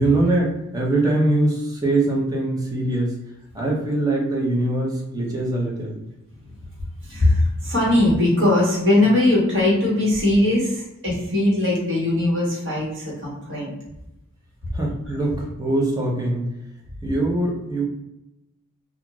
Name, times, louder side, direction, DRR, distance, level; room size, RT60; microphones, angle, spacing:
voice 1, 0.0-3.1 3.5-6.0 14.7-16.5 17.0-17.8, right 2 dB, 15° right, -3 dB, 0.7 m, -22 dB
voice 2, 7.0-13.8 15.1-15.2, left 1 dB, 60° right, -5 dB, 1.3 m, -20 dB
2.4 x 2.4 x 2.9 m, 0.91 s
head